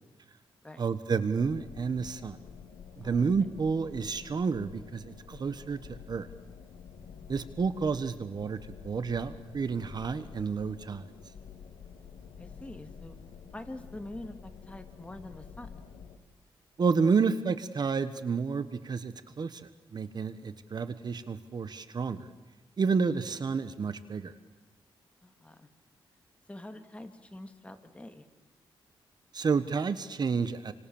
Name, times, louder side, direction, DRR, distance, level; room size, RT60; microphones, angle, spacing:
voice 1, 0.8-2.4 3.0-6.3 7.3-8.6 8.8-11.0 16.8-22.3 22.8-24.3 29.3-30.7, right 5 dB, 50° right, 12 dB, 1.4 m, -30 dB
sound 1, 1.4-16.2, left 7 dB, 85° left, 2.5 m, -49 dB
voice 2, 3.0-3.5 12.4-15.8 25.2-25.7 26.5-28.2, left 1 dB, 15° left, 7 dB, 2.5 m, -45 dB
29.0 x 25.5 x 7.3 m, 1.1 s
cardioid pair, 95°, 9 cm